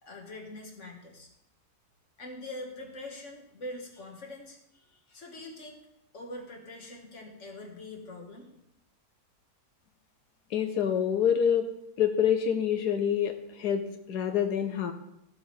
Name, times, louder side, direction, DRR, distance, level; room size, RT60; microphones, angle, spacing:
voice 1, 0.0-1.3 2.2-5.8 6.1-8.5, left 1 dB, 45° left, 1 dB, 2.0 m, -43 dB
voice 2, 10.5-11.7 12.0-14.9, left 8 dB, 75° left, 6 dB, 1.3 m, -26 dB
14.5 x 8.1 x 3.3 m, 0.80 s
omnidirectional pair, 1.8 m